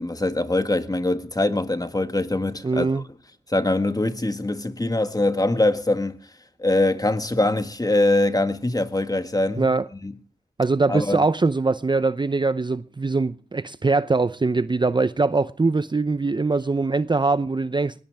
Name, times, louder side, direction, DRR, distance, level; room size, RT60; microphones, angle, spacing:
voice 1, 0.0-2.9 3.5-6.2 6.6-9.7 10.0-10.1 10.9-11.2, left 2 dB, 20° left, 1.8 m, -23 dB
voice 2, 2.6-3.0 9.6-9.9 10.6-17.9, right 3 dB, 25° right, 0.7 m, -22 dB
21.0 x 18.0 x 3.5 m
cardioid pair, 50°, 17 cm